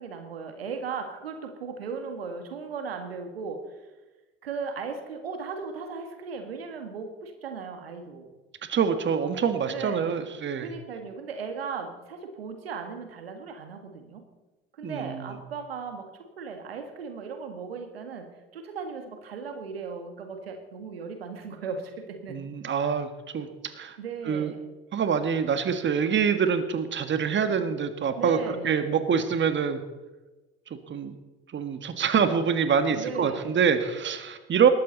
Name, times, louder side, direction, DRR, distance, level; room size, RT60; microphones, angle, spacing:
voice 1, 0.0-3.9 4.4-8.3 9.7-10.2 10.6-14.2 14.8-22.4 22.8-23.0 24.0-24.6 28.2-29.0 32.9-33.6, right 5 dB, 90° right, 6 dB, 1.8 m, -37 dB
voice 2, 8.7-10.7 14.8-15.3 22.3-23.5 23.7-24.0 24.3-24.5 24.9-29.8 30.7-31.2 31.5-34.7, right 7 dB, 40° right, 9 dB, 1.8 m, -25 dB
19.5 x 13.5 x 4.1 m, 1.1 s
hypercardioid pair, 60°, 29 cm